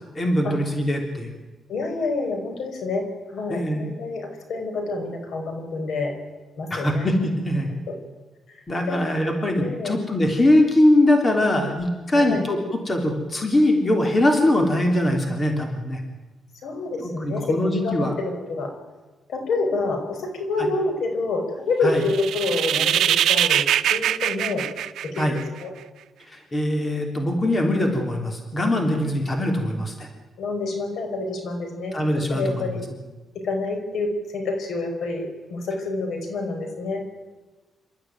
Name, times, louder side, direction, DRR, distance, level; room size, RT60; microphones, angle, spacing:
voice 1, 0.1-1.3 3.5-3.9 6.7-7.7 8.7-16.0 17.0-18.1 20.6-20.7 21.8-22.0 25.2-25.4 26.3-30.1 31.9-32.8, left 1 dB, 25° left, 4 dB, 3.4 m, -22 dB
voice 2, 1.7-6.1 6.6-7.1 7.9-8.0 8.9-9.0 9.6-9.9 12.1-12.4 16.6-18.7 19.3-23.6 23.9-24.7 25.0-25.7 30.4-32.0 32.3-32.8 33.4-37.0, left 3 dB, 75° left, 5 dB, 5.2 m, -27 dB
sound 1, 22.0-25.6, right 11 dB, 90° right, 0.8 m, -22 dB
27.0 x 13.5 x 9.3 m, 1.2 s
cardioid pair, 130°, 0 cm